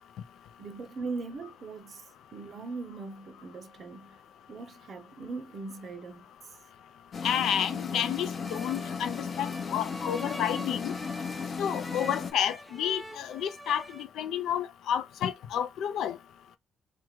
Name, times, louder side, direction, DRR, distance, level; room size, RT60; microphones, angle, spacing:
voice 1, 0.6-4.2 4.5-6.3, right 4 dB, 50° right, 0.6 m, -40 dB
sound 1, 7.1-12.3, left 5 dB, 45° left, 0.7 m, -35 dB
voice 2, 7.2-10.9 11.6-16.2, left 9 dB, 80° left, 0.5 m, -30 dB
sound 2, 8.4-14.0, equal, 5° right, 0.6 m, -45 dB
3.4 x 2.1 x 3.0 m
cardioid pair, 90°, 0 cm